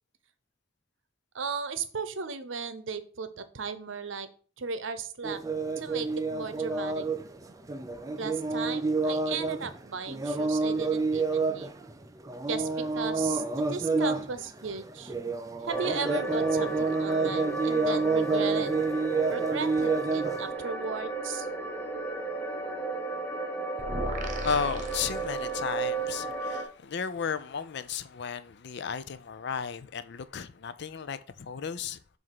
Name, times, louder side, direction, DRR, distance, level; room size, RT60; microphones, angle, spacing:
voice 1, 1.3-4.3 4.6-5.4 5.8-7.1 8.2-11.8 12.5-15.1 15.6-18.8 19.3-21.5, right 5 dB, 80° right, 0.7 m, -36 dB
sound 1, 5.2-9.8 10.1-20.5, right 3 dB, 20° right, 0.5 m, -29 dB
sound 2, 15.7-26.6, right 3 dB, 10° left, 1.0 m, -34 dB
sound 3, 23.8-25.9, right 1 dB, 40° right, 1.1 m, -36 dB
voice 2, 24.4-32.0, left 6 dB, 65° left, 0.5 m, -34 dB
7.6 x 2.6 x 5.8 m
head